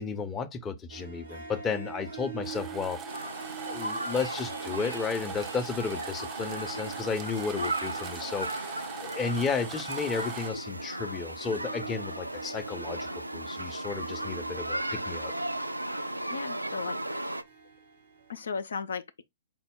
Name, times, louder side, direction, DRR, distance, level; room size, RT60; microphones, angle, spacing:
voice 1, 0.0-3.0 3.7-15.3, left 5 dB, 20° left, 0.6 m, -33 dB
Harp, 0.9-18.5, right 7 dB, 65° right, 1.0 m, -47 dB
sound 1, 2.4-10.5, right 6 dB, 25° right, 0.5 m, -42 dB
sound 2, 3.1-17.4, right 1 dB, 85° right, 0.3 m, -36 dB
voice 2, 16.3-17.0 18.3-19.2, left 5 dB, 70° left, 0.4 m, -35 dB
5.2 x 2.1 x 3.5 m
figure-of-eight pair, 110°, 0 cm